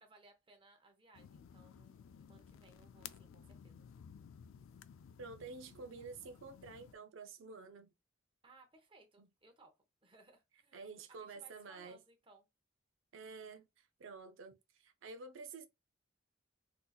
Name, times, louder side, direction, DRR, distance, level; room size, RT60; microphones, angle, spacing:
voice 1, 0.0-3.9 8.4-10.8 11.1-12.5, right 2 dB, 25° right, 0.7 m, -64 dB
sound 1, 1.1-7.0, left 8 dB, 90° left, 0.3 m, -56 dB
voice 2, 5.2-7.9 9.2-9.3 10.7-12.0 13.1-15.7, right 4 dB, 85° right, 0.5 m, -50 dB
3.7 x 2.7 x 2.3 m
head